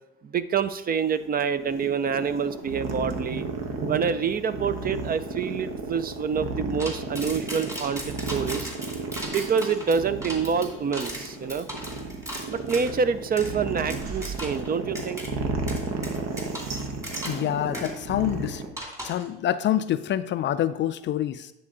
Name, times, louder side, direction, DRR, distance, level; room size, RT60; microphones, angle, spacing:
voice 1, 0.2-3.5 3.9-8.7 9.3-11.7 12.5-15.2, right 6 dB, 30° right, 13 dB, 0.5 m, -27 dB
sound 1, 1.0-18.7, right 3 dB, 60° right, 1.1 m, -33 dB
sound 2, 6.8-12.9 13.4-13.5 13.9-14.7 14.9-15.3 15.7-17.5 17.7-17.9 18.8-19.3, equal, 10° right, 2.2 m, -37 dB
voice 2, 17.3-18.6 19.0-21.5, left 11 dB, 40° left, 13 dB, 0.4 m, -26 dB
9.6 x 3.9 x 3.7 m, 0.94 s
hypercardioid pair, 70°, 30 cm